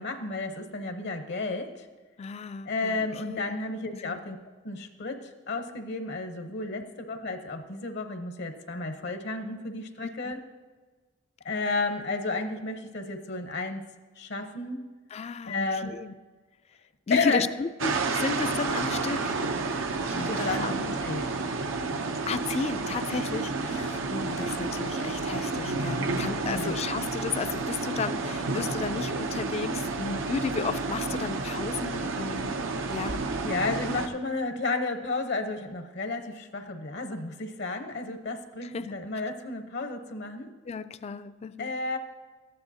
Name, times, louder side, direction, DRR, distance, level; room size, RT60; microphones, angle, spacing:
voice 1, 0.0-1.9 2.6-4.4 4.6-10.4 11.4-14.9 15.4-16.1 17.1-17.5 20.1-21.2 23.7-23.8 26.4-26.8 29.7-29.8 33.4-40.5 41.6-42.0, left 3 dB, 60° left, 0.8 m, -32 dB
voice 2, 2.2-3.6 3.9-4.2 6.8-6.9 10.2-10.3 15.1-16.1 17.1-19.4 20.1-20.9 22.3-32.5 32.9-33.3 38.6-39.0 40.7-41.7, left 5 dB, 35° left, 0.3 m, -34 dB
sound 1, 17.8-34.1, right 3 dB, 90° right, 0.7 m, -30 dB
13.5 x 9.7 x 2.7 m
head